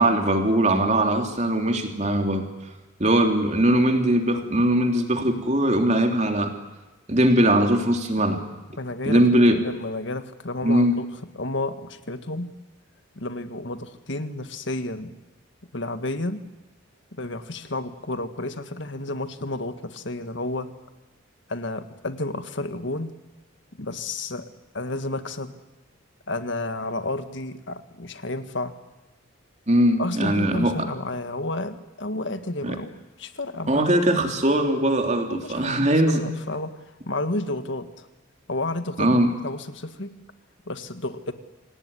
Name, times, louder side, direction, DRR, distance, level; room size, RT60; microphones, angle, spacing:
voice 1, 0.0-2.4 3.0-6.5 7.1-8.4 9.0-9.6 10.6-10.9 29.7-30.7 32.6-32.7 33.7-36.2 39.0-39.3, right 1 dB, 35° right, 4 dB, 3.3 m, -20 dB
voice 2, 8.8-9.2 9.5-11.1 11.3-12.5 13.1-15.1 15.7-16.4 17.1-20.7 21.5-23.1 23.8-24.4 24.7-25.5 26.3-28.7 30.0-33.9 35.3-38.1 38.5-40.1 40.7-41.3, left 2 dB, 65° left, 9 dB, 1.8 m, -31 dB
27.0 x 18.5 x 9.9 m, 1.1 s
head